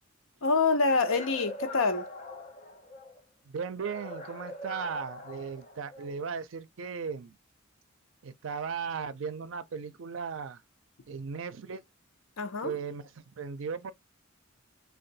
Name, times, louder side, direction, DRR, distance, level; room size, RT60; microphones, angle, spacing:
voice 1, 0.4-2.0 12.4-12.7, left 4 dB, 75° left, 0.6 m, -26 dB
sound 1, 0.8-3.2 3.8-6.2, left 1 dB, 35° left, 0.8 m, -43 dB
voice 2, 3.5-7.3 8.2-10.6 11.1-11.8 12.6-13.0 13.4-13.9, right 6 dB, 65° right, 0.5 m, -36 dB
2.6 x 2.3 x 3.9 m
head